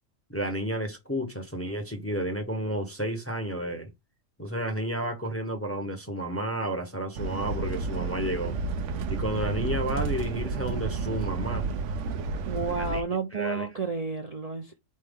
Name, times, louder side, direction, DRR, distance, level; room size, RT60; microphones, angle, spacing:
voice 1, 0.3-3.9 4.4-8.6 9.1-11.7 12.8-13.0 13.3-13.7, equal, 15° left, 0.8 m, -31 dB
sound 1, 7.1-13.0, right 4 dB, 70° right, 0.9 m, -31 dB
voice 2, 12.4-14.8, right 4 dB, 40° right, 0.6 m, -31 dB
4.4 x 3.2 x 3.6 m
omnidirectional pair, 1.3 m